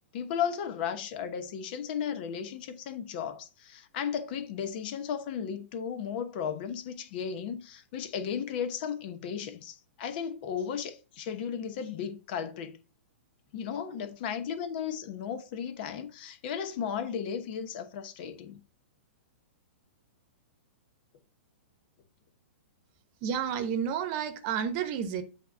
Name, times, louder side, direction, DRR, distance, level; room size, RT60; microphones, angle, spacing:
voice 1, 0.1-12.8 13.5-18.6, left 7 dB, 50° left, 1.0 m, -35 dB
voice 2, 23.2-25.2, right 8 dB, 40° right, 1.0 m, -30 dB
8.1 x 3.0 x 5.4 m
hypercardioid pair, 120°, 7 cm